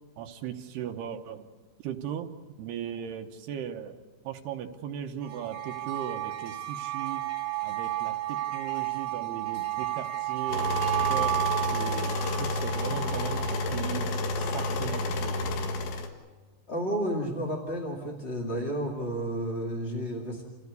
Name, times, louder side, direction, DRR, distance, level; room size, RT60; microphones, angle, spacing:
voice 1, 0.2-1.5 1.8-2.3 2.6-4.0 4.2-7.3 7.6-10.7 11.0-15.6, right 9 dB, 75° right, 5 dB, 2.6 m, -38 dB
sound 1, 5.2-13.9, right 17 dB, 60° right, 3.5 m, -32 dB
sound 2, 10.5-16.1, left 2 dB, 80° left, 4.0 m, -30 dB
voice 2, 16.7-20.4, equal, 30° left, -1 dB, 1.1 m, -31 dB
28.0 x 15.5 x 8.2 m, 1.3 s
omnidirectional pair, 5.4 m